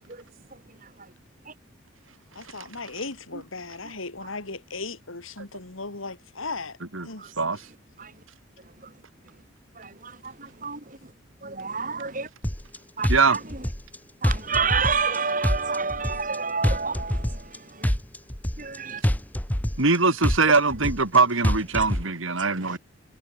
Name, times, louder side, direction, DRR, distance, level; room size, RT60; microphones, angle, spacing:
voice 1, 2.3-6.8 7.0-7.3, left 3 dB, 80° left, 3.4 m, -36 dB
voice 2, 9.8-10.8 11.4-12.3 13.0-13.4 14.2-17.4 17.8-17.9 22.6-22.8, right 5 dB, 40° right, 3.1 m, -28 dB
sound 1, 12.4-12.8 13.0-14.0 14.2-15.2 15.4-16.4 16.6-17.6 17.8-18.8 19.0-20.0 20.2-21.2 21.4-22.0, equal, 10° left, 0.9 m, -25 dB
voice 3, 19.8-22.8, right 4 dB, 80° right, 2.5 m, -21 dB
head